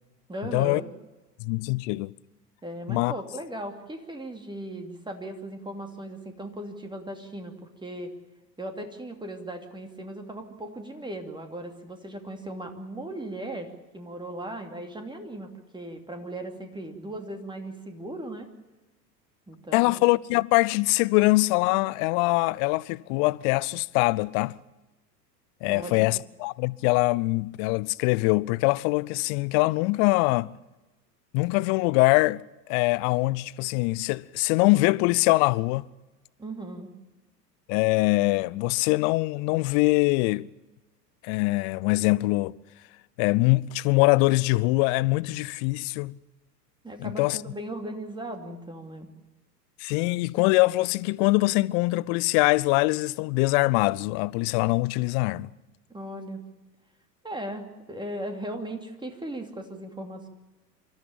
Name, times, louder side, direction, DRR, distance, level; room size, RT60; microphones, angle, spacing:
voice 1, 0.3-0.9 2.6-7.5 7.8-8.1 8.6-18.5 19.5-20.0 25.7-26.1 36.4-36.9 46.8-49.1 55.9-56.4 57.2-60.3, right 1 dB, 10° right, 2.7 m, -37 dB
voice 2, 1.4-2.1 2.9-3.1 19.7-24.6 25.6-30.5 31.3-32.4 32.7-35.8 37.7-40.5 41.2-42.6 43.2-46.1 47.0-47.4 49.8-55.5, left 23 dB, 40° left, 0.6 m, -23 dB
26.0 x 13.5 x 8.9 m
figure-of-eight pair, 85°, 50 cm